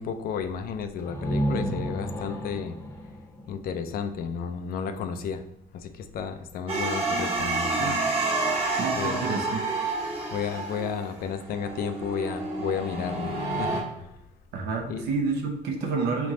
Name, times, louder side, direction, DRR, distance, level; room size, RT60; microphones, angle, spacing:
voice 1, 0.0-2.8 3.5-5.4 5.7-8.0 9.0-9.3 10.3-14.1 14.9-15.0, left 6 dB, 60° left, 8 dB, 0.5 m, -32 dB
sound 1, 1.0-4.7, right 1 dB, 15° left, 0.6 m, -32 dB
sound 2, 6.7-13.8, right 3 dB, 35° right, 1.3 m, -29 dB
voice 2, 8.7-9.6 14.5-16.3, right 4 dB, 75° right, 3 dB, 0.9 m, -29 dB
3.5 x 3.1 x 3.7 m, 0.86 s
cardioid pair, 110°, 17 cm